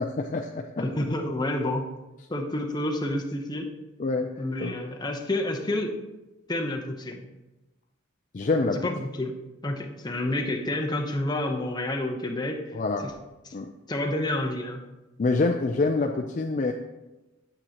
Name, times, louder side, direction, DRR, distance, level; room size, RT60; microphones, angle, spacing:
voice 1, 0.0-0.7 4.0-4.3 4.6-4.9 8.3-8.9 12.7-13.1 13.5-13.7 15.2-16.7, left 3 dB, 40° left, 4 dB, 0.4 m, -26 dB
voice 2, 0.8-1.9 2.3-3.7 4.4-5.9 6.5-7.3 8.8-9.3 9.6-13.1 13.5-13.6 13.9-14.8, left 1 dB, 20° left, 2 dB, 0.8 m, -29 dB
8.7 x 7.8 x 2.9 m, 1.0 s
head